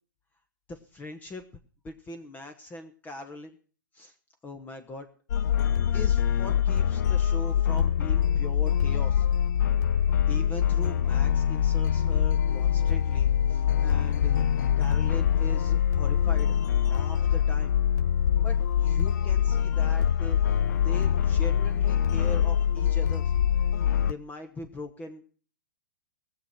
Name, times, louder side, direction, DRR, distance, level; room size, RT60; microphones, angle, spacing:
voice 1, 0.7-1.4 1.8-3.5 3.9-4.1 4.4-5.1 5.9-9.3 10.3-14.5 14.8-17.8 18.4-20.6 20.8-23.3 24.1-25.4, left 2 dB, 15° left, 7 dB, 1.2 m, -41 dB
sound 1, 5.3-24.1, left 9 dB, 60° left, 0.5 m, -24 dB
19.0 x 7.4 x 5.9 m, 0.40 s
figure-of-eight pair, 120°, 11 cm